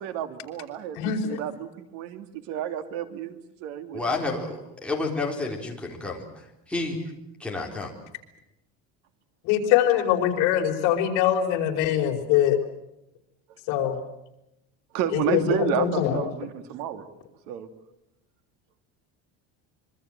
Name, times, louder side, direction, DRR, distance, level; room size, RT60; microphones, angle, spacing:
voice 1, 0.0-4.3 14.9-17.0 17.5-17.7, right 10 dB, 80° right, 8 dB, 2.8 m, -31 dB
voice 2, 1.0-1.4 9.4-12.6 13.7-14.0 15.1-16.2, left 10 dB, 70° left, 3 dB, 4.7 m, -23 dB
voice 3, 3.9-6.2 6.7-7.0 7.4-7.9, left 3 dB, 5° left, -1 dB, 4.0 m, -30 dB
25.5 x 24.0 x 7.7 m, 0.87 s
cardioid pair, 170°, 32 cm